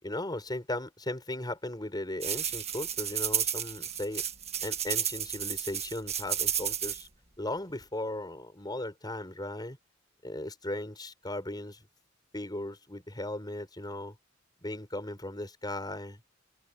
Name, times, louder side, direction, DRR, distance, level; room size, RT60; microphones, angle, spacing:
voice 1, 0.0-4.2 4.6-7.1 7.4-9.8 10.2-11.9 12.3-14.2 14.6-16.2, left 1 dB, 20° left, 5.1 m, -37 dB
sound 1, 2.2-7.0, right 9 dB, 35° right, 1.8 m, -32 dB
open air
head